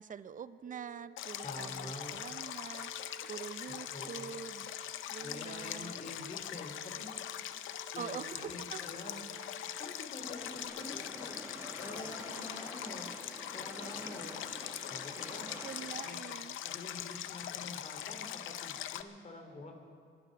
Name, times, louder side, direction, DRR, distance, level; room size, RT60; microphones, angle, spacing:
voice 1, 0.0-4.7 5.1-5.9 8.0-8.8 15.6-16.6, right 7 dB, 40° right, 14 dB, 0.6 m, -45 dB
sound 1, 0.7-10.7, right 12 dB, 60° right, 1.4 m, -57 dB
Stream, 1.2-19.0, left 11 dB, 80° left, 0.6 m, -42 dB
voice 2, 1.4-2.2 3.9-4.4 5.2-7.1 7.9-14.4 14.9-15.5 16.0-16.2 16.6-19.7, left 2 dB, 35° left, 3 dB, 3.1 m, -47 dB
sound 2, 10.2-16.0, right 1 dB, 10° right, 1.6 m, -49 dB
23.5 x 10.5 x 5.3 m, 2.1 s
cardioid pair, 90°, 20 cm